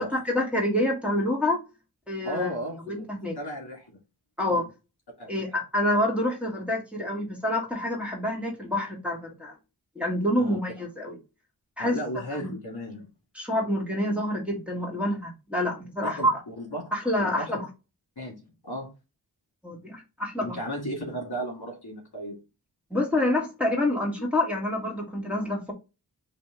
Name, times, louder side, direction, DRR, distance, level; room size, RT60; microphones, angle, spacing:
voice 1, 0.1-1.6 2.1-2.5 2.9-3.4 4.4-4.7 5.3-9.6 10.0-11.2 11.8-12.5 13.3-16.4 16.9-17.7 19.6-20.6 22.9-25.7, left 1 dB, 5° right, 1.9 m, -27 dB
voice 2, 2.2-3.1 3.3-3.9 4.5-4.6 5.2-5.5 10.4-10.6 11.8-13.1 16.0-16.8 17.2-17.5 18.2-18.9 20.4-22.4, equal, 60° left, 2.0 m, -35 dB
5.0 x 2.8 x 3.7 m
wide cardioid pair, 45°, 43 cm